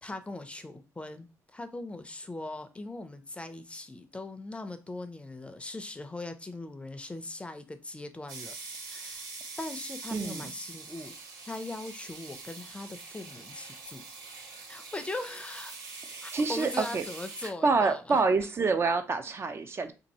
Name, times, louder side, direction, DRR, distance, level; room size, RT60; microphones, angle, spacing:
voice 1, 0.0-8.5 8.9-9.3 9.6-11.1 11.5-14.0 14.7-15.8 16.2-18.2, left 2 dB, 20° left, 0.5 m, -40 dB
sound 1, 8.3-17.5, right 4 dB, 90° right, 0.8 m, -44 dB
voice 2, 10.1-10.5 16.1-17.1 17.4-19.9, right 4 dB, 40° right, 0.5 m, -27 dB
2.7 x 2.5 x 4.1 m
cardioid pair, 75°, 6 cm